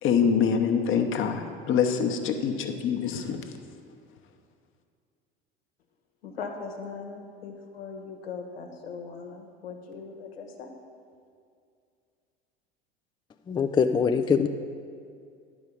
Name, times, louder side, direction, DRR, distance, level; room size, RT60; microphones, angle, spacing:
voice 1, 0.0-3.6, left 7 dB, 40° left, 1.0 m, -25 dB
voice 2, 6.2-10.7, left 5 dB, 80° left, 1.2 m, -39 dB
voice 3, 13.5-14.5, left 6 dB, 15° left, 0.4 m, -23 dB
10.5 x 4.9 x 6.9 m
hypercardioid pair, 70°, 30 cm